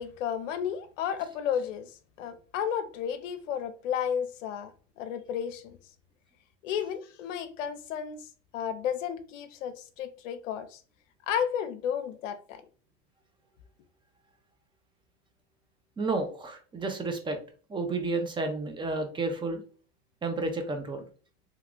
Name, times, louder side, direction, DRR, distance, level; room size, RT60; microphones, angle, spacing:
voice 1, 0.0-1.9 2.2-4.7 5.0-5.8 6.6-8.3 8.5-10.8 11.3-12.6, left 8 dB, 70° left, 0.7 m, -32 dB
voice 2, 16.0-17.4 17.7-19.6 20.2-21.0, right 3 dB, 15° right, 0.6 m, -31 dB
3.0 x 2.3 x 3.6 m
supercardioid pair, 120°, 38 cm